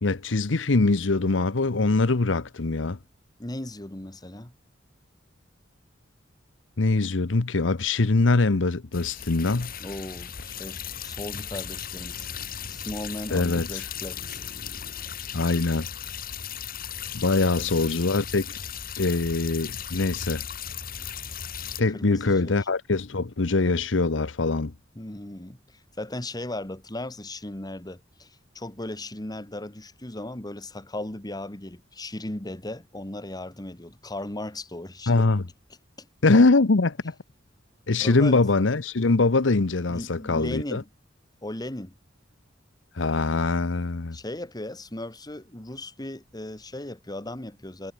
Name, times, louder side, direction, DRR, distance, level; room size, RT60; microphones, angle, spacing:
voice 1, 0.0-3.0 6.8-9.7 13.3-13.8 15.3-15.9 17.1-18.6 19.0-20.4 21.8-24.7 35.1-35.4 36.2-37.1 37.9-40.8 43.0-44.2, left 3 dB, 80° left, 0.9 m, -23 dB
voice 2, 3.4-4.5 9.8-12.3 12.7-14.4 14.9-15.1 17.4-17.7 21.9-22.7 25.0-35.3 36.0-36.1 38.0-38.4 39.9-40.9 41.4-41.9 44.1-47.9, left 1 dB, 20° left, 1.9 m, -37 dB
sound 1, 8.9-21.8, left 8 dB, 50° left, 2.1 m, -36 dB
head